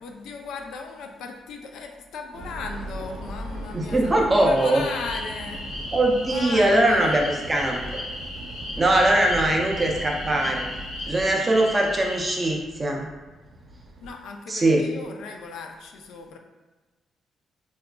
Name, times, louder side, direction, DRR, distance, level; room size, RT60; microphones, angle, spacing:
voice 1, 0.0-5.7 6.3-7.2 14.0-16.4, left 4 dB, 85° left, 3 dB, 0.4 m, -37 dB
sound 1, 2.3-14.1, right 1 dB, 70° right, 0.5 m, -39 dB
voice 2, 3.7-4.8 5.9-7.8 8.8-10.7 11.1-13.1 14.5-14.8, right 1 dB, 15° right, 0 dB, 0.4 m, -21 dB
sound 2, 4.5-12.6, left 1 dB, 65° left, 0.9 m, -36 dB
4.7 x 2.3 x 2.2 m, 1.2 s
cardioid pair, 170°, 0 cm